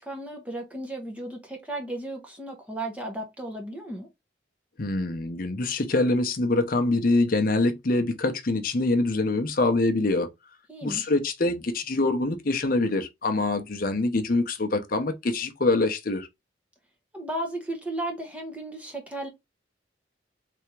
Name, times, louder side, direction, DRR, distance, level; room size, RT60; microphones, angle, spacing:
voice 1, 0.0-4.1 10.7-11.1 17.1-19.3, right 1 dB, 5° right, 0.9 m, -34 dB
voice 2, 4.8-10.3 10.8-16.3, left 2 dB, 50° left, 0.7 m, -25 dB
3.5 x 3.4 x 3.1 m
head